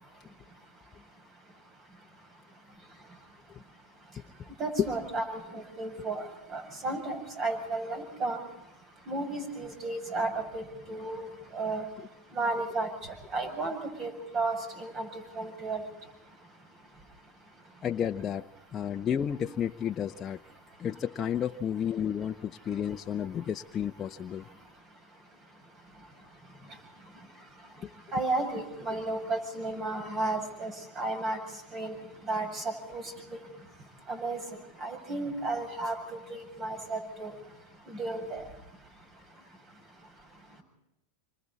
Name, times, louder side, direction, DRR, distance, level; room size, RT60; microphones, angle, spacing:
voice 1, 4.6-6.3 6.5-8.4 9.1-11.8 12.3-12.9 13.3-15.1 15.4-15.8 28.1-30.7 31.0-31.4 31.7-31.9 32.3-33.0 34.1-34.4 34.8-36.0 36.3-37.3 37.9-38.4, right 2 dB, 35° right, 6 dB, 7.5 m, -33 dB
voice 2, 17.8-20.4 20.8-24.5, left 9 dB, 30° left, 4 dB, 0.8 m, -31 dB
28.0 x 25.0 x 4.2 m, 0.85 s
hypercardioid pair, 110°, 0 cm